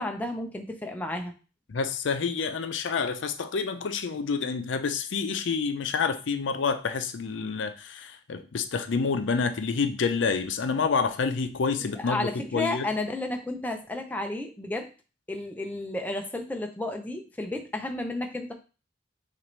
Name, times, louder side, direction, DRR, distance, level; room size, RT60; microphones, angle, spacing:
voice 1, 0.0-1.3 11.8-14.9 15.3-18.5, left 2 dB, 10° left, 3 dB, 0.4 m, -32 dB
voice 2, 1.7-12.9, left 5 dB, 70° left, 9 dB, 0.5 m, -28 dB
6.0 x 2.5 x 3.1 m, 0.34 s
head